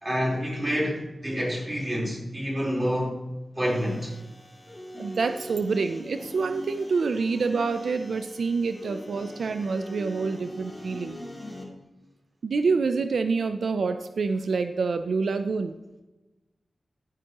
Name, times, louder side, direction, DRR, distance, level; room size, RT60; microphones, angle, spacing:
voice 1, 0.0-3.2 3.6-4.1, equal, 25° right, 3.9 m, -28 dB
sound 1, 3.6-11.6, left 1 dB, 10° left, 2.4 m, -42 dB
voice 2, 5.0-11.2 12.4-15.8, right 4 dB, 90° right, 0.5 m, -27 dB
14.0 x 9.9 x 3.0 m
wide cardioid pair, 85°, 0 cm